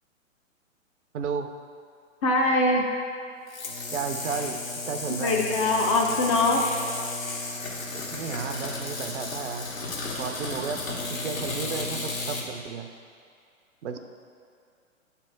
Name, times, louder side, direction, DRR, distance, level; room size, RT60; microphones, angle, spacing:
voice 1, 1.1-1.5 3.9-4.6 4.8-5.4 7.9-9.7 10.2-10.8 11.2-12.9 13.8-14.0, right 6 dB, 60° right, 6 dB, 0.6 m, -33 dB
voice 2, 2.2-2.9 5.2-6.6, left 2 dB, 25° left, 0 dB, 0.4 m, -22 dB
sound 1, 3.5-12.5, left 3 dB, 80° left, 1.5 m, -33 dB
8.6 x 3.4 x 4.5 m, 2.3 s
figure-of-eight pair, 120°, 40 cm